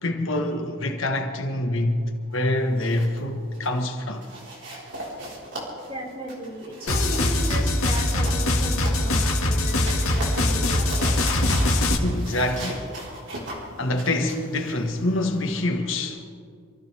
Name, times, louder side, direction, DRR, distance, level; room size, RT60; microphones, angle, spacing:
voice 1, 0.0-2.0 2.3-4.3 12.0-12.8 13.8-16.3, left 1 dB, 70° left, 1.4 m, -25 dB
sound 1, 2.6-3.2 3.5-3.8 4.2-9.3 9.7-15.6, right 1 dB, 60° right, 4.3 m, -38 dB
voice 2, 5.9-11.2, right 1 dB, 30° right, 5.4 m, -36 dB
sound 2, 6.9-12.0, left 1 dB, 90° left, 1.9 m, -22 dB
27.0 x 14.5 x 3.4 m
head